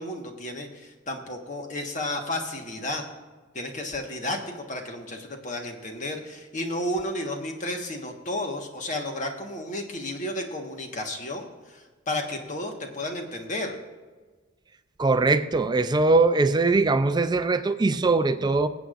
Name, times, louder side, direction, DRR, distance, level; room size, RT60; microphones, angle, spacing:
voice 1, 0.0-3.0 3.5-13.8, left 1 dB, 40° left, 3 dB, 1.4 m, -32 dB
voice 2, 15.0-18.7, right 3 dB, 20° right, 11 dB, 0.4 m, -21 dB
19.5 x 8.2 x 2.5 m, 1.3 s
head